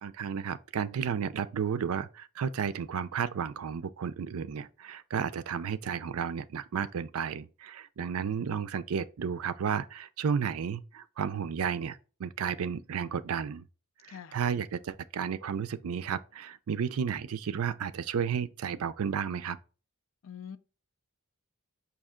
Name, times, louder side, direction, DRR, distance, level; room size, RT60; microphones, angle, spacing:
voice 1, 0.0-13.6 14.0-19.6, right 7 dB, 75° right, 0.4 m, -33 dB
voice 2, 14.1-14.4 20.2-20.6, left 8 dB, 60° left, 0.4 m, -44 dB
5.3 x 2.8 x 3.6 m
head